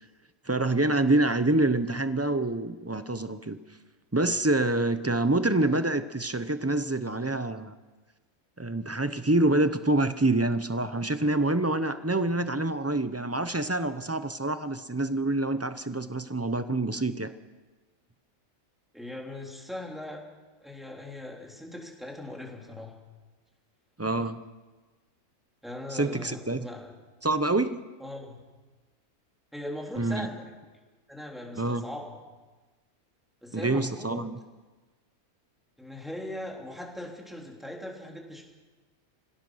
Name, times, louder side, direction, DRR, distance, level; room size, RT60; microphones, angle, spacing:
voice 1, 0.4-3.6 4.1-7.7 8.6-17.3 24.0-24.4 25.9-26.7 27.2-27.8 30.0-30.3 31.5-31.8 33.5-34.4, right 2 dB, 15° right, 11 dB, 0.5 m, -26 dB
voice 2, 18.9-20.2 20.6-22.9 25.6-26.9 28.0-28.4 29.5-30.5 31.1-32.2 33.4-34.3 35.8-38.4, left 1 dB, ahead, -1 dB, 3.3 m, -40 dB
25.0 x 16.5 x 6.4 m, 1.3 s
omnidirectional pair, 1.5 m